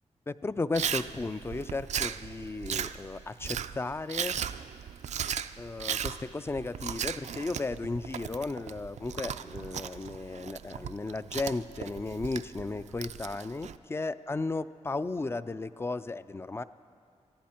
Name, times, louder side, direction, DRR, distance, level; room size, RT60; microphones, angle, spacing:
voice 1, 0.3-4.4 5.6-16.6, left 3 dB, 20° left, 14 dB, 0.3 m, -35 dB
Chewing mastication, 0.7-13.8, right 8 dB, 70° right, 0.4 m, -36 dB
19.0 x 14.5 x 4.4 m, 2.3 s
wide cardioid pair, 115°, 12 cm